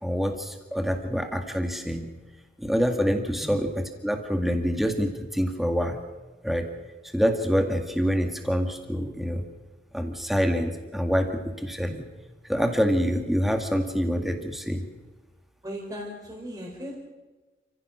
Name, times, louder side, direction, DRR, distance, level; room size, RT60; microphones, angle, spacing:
voice 1, 0.0-2.1 2.6-6.0 6.4-6.7 7.1-9.4 9.9-12.1 12.5-14.9, equal, ahead, 5 dB, 1.9 m, -26 dB
voice 2, 15.6-17.0, equal, 20° right, -4 dB, 4.0 m, -37 dB
29.0 x 15.5 x 6.3 m, 1.2 s
head